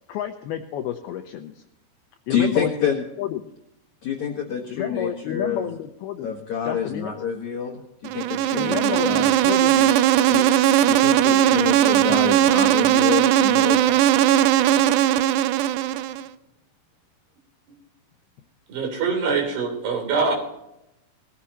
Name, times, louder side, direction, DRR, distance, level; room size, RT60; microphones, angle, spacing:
voice 1, 0.1-1.6 2.3-3.5 4.7-6.4 6.6-7.1 8.5-9.9, left 10 dB, 85° left, 6 dB, 2.2 m, -30 dB
voice 2, 2.3-2.9 4.0-5.6 6.2-7.8 8.1-9.3 9.8-9.9 10.3-10.5 10.8-14.3, left 7 dB, 65° left, 0 dB, 1.9 m, -27 dB
Insect, 8.1-16.3, right 12 dB, 80° right, 2.5 m, -18 dB
voice 3, 18.7-20.4, right 4 dB, 60° right, 3 dB, 5.1 m, -24 dB
19.5 x 14.0 x 2.9 m, 0.85 s
omnidirectional pair, 5.3 m